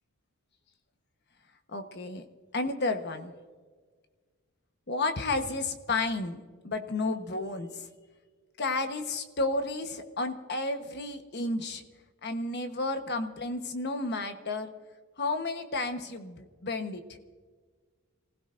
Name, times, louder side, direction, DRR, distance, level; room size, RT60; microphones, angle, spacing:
voice 1, 1.7-2.2 2.5-3.3 4.9-7.7 8.6-11.8 12.2-14.8 15.2-17.2, left 2 dB, 50° left, 7 dB, 1.1 m, -32 dB
29.5 x 16.0 x 2.6 m, 1.5 s
head